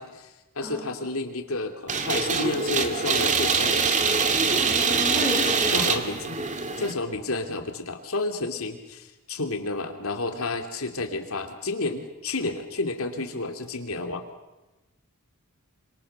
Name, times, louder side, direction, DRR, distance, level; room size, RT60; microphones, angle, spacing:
voice 1, 0.0-3.9 5.7-6.5 6.8-14.3, left 2 dB, 80° left, 5 dB, 2.9 m, -31 dB
sound 1, 1.9-6.9, right 5 dB, 35° right, 2.0 m, -24 dB
voice 2, 4.6-5.9, left 1 dB, 10° right, 0 dB, 5.3 m, -32 dB
27.0 x 26.0 x 6.8 m, 1.1 s
head